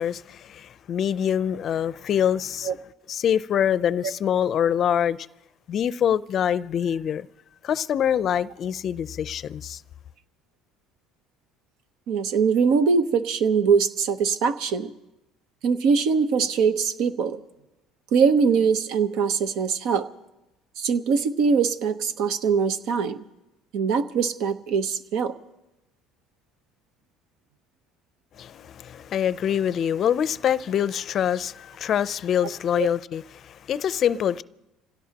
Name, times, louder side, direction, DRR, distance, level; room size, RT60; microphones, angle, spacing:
voice 1, 0.0-2.7 3.1-5.2 5.7-7.3 7.6-9.8 28.4-34.4, left 9 dB, 50° left, 0.5 m, -25 dB
voice 2, 12.1-14.9 15.6-17.4 18.1-20.1 20.8-23.2 23.7-25.4 32.7-32.9, right 5 dB, 70° right, 0.9 m, -22 dB
27.0 x 17.0 x 2.9 m
supercardioid pair, 95°, 0 cm